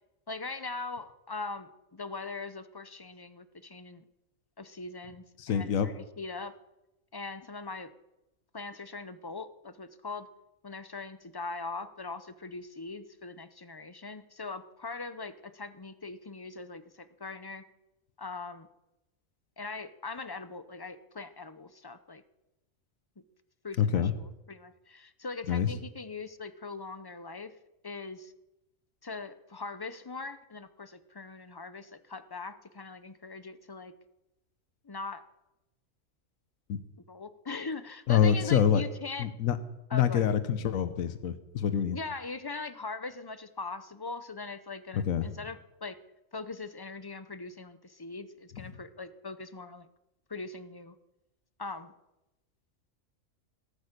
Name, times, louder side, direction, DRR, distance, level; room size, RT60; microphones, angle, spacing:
voice 1, 0.3-4.0 4.6-6.5 7.1-7.9 8.5-10.3 10.6-17.6 18.2-18.7 19.6-22.2 23.6-27.5 27.8-28.3 29.0-33.9 34.8-35.2 37.1-39.3 39.9-40.3 41.9-46.0 46.3-49.9 50.3-51.0 51.6-51.9, left 3 dB, 25° left, 12 dB, 0.5 m, -41 dB
voice 2, 5.4-5.9 23.8-24.1 25.5-25.7 36.7-36.8 38.1-38.8 39.2-39.6 39.9-42.0 44.9-45.3, left 8 dB, 85° left, 11 dB, 1.3 m, -26 dB
18.0 x 8.4 x 6.7 m, 0.93 s
omnidirectional pair, 1.4 m